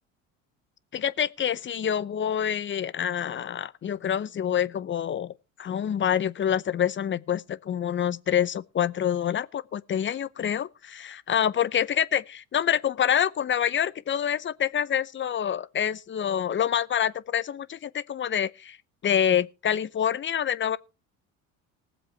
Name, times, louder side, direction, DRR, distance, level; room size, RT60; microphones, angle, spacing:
voice 1, 0.9-18.8 19.0-20.8, left 9 dB, 30° left, 0.7 m, -27 dB
19.0 x 7.7 x 4.4 m
hypercardioid pair, 80°, 40 cm